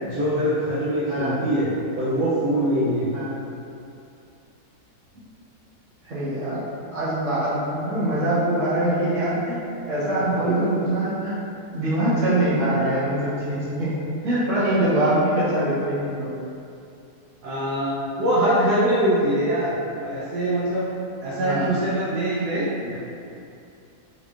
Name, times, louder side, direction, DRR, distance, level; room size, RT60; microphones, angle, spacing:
voice 1, 0.0-1.7 2.0-3.1 10.4-10.7 17.4-19.7 20.0-20.9 21.2-23.0, right 1 dB, 80° right, -9 dB, 1.2 m, -23 dB
voice 2, 1.1-1.4 3.1-3.4 6.0-6.7 6.9-11.4 11.7-13.9 14.2-16.3 21.4-21.7, right 1 dB, 55° right, -11 dB, 1.4 m, -23 dB
4.1 x 2.9 x 2.3 m, 2.6 s
omnidirectional pair, 1.7 m